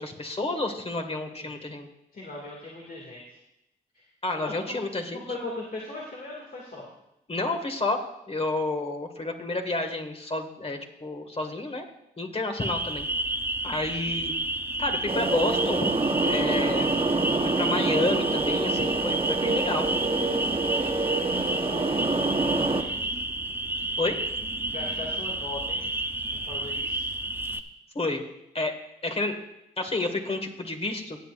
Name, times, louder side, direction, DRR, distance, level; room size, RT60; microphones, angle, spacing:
voice 1, 0.0-1.9 4.2-5.2 7.3-11.8 12.2-13.1 13.6-14.3 14.8-15.9 16.2-16.9 17.6-19.9 24.0-24.2 28.0-28.2 28.5-28.7 29.0-29.4 29.8-31.2, left 2 dB, 35° left, 5 dB, 1.9 m, -30 dB
voice 2, 2.1-3.4 3.9-4.1 4.4-4.8 5.1-6.9 20.5-23.2 24.7-25.9 26.3-27.1, left 2 dB, 55° left, -3 dB, 2.3 m, -40 dB
sound 1, 12.6-27.6, right 1 dB, 10° right, 0.8 m, -30 dB
sound 2, 15.1-22.8, right 3 dB, 30° right, 1.1 m, -27 dB
18.0 x 8.4 x 2.5 m, 0.87 s
supercardioid pair, 50°, 18 cm